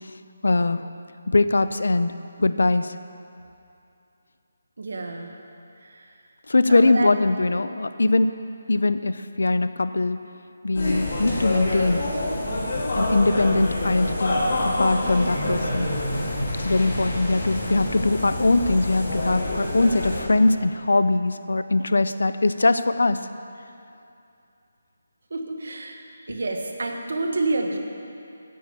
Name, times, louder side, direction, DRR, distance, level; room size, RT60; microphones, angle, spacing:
voice 1, 0.4-0.9 1.3-2.1 2.4-2.9 6.5-8.3 8.7-10.2 10.6-12.0 12.9-14.5 14.8-15.9 16.6-23.3, left 2 dB, 90° left, 12 dB, 0.6 m, -21 dB
voice 2, 4.8-5.3 5.8-6.1 6.7-7.1 25.3-26.0 26.3-27.8, right 2 dB, 60° right, 3 dB, 1.4 m, -28 dB
sound 1, 10.7-20.2, left 1 dB, 45° left, 2.6 m, -27 dB
9.5 x 8.6 x 7.0 m, 2.6 s
hypercardioid pair, 175°, 0 cm